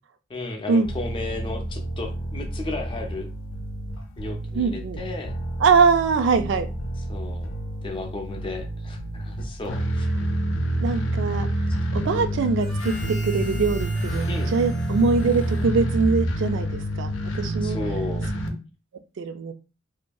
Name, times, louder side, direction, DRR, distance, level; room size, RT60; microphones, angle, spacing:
voice 1, 0.3-3.3 4.2-5.3 7.1-7.5 7.8-10.1 12.2-12.3 14.3-14.5 17.6-18.3, left 2 dB, 25° left, 3 dB, 0.5 m, -34 dB
sound 1, 0.8-18.5, right 1 dB, 75° left, 0.5 m, -28 dB
voice 2, 4.5-5.0 5.6-6.7 10.8-11.5 11.9-17.8 19.2-19.5, right 4 dB, 65° right, 10 dB, 0.3 m, -22 dB
Harmonica, 12.6-16.4, equal, ahead, 0.8 m, -43 dB
2.7 x 2.5 x 2.2 m, 0.32 s
head